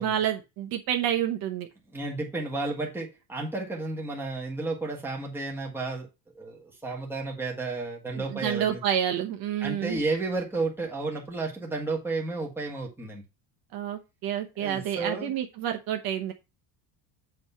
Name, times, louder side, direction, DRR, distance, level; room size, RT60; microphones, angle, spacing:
voice 1, 0.0-1.7 8.1-10.0 13.7-16.3, right 10 dB, 45° right, 1.0 m, -29 dB
voice 2, 1.9-6.1 6.3-8.8 9.6-13.2 14.6-15.3, right 3 dB, 5° right, 1.5 m, -32 dB
7.9 x 3.2 x 5.5 m
cardioid pair, 165°, 49 cm